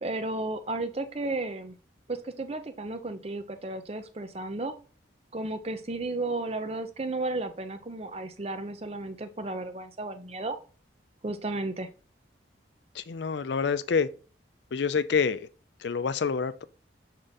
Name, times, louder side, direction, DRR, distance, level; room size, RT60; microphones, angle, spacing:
voice 1, 0.0-1.7 2.1-4.7 5.3-10.6 11.2-11.9, right 2 dB, 30° right, 0.6 m, -33 dB
voice 2, 12.9-14.1 14.7-15.5 15.8-16.6, left 5 dB, 65° left, 0.4 m, -27 dB
6.6 x 3.7 x 4.0 m
head